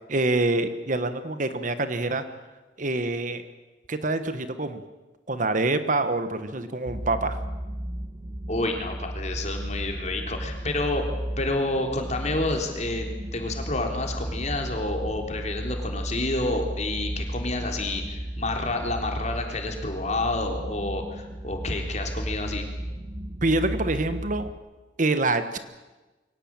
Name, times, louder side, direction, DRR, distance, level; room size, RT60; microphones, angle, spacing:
voice 1, 0.1-2.2 2.8-3.4 3.9-4.8 5.3-7.4 23.4-24.5 25.0-25.6, right 2 dB, 45° right, 10 dB, 1.3 m, -26 dB
sound 1, 6.9-24.6, right 1 dB, 25° right, 1.4 m, -34 dB
voice 2, 8.5-11.0 11.4-13.1 13.3-22.7, left 2 dB, 40° left, 3 dB, 3.8 m, -29 dB
23.5 x 18.0 x 9.0 m, 1.2 s
head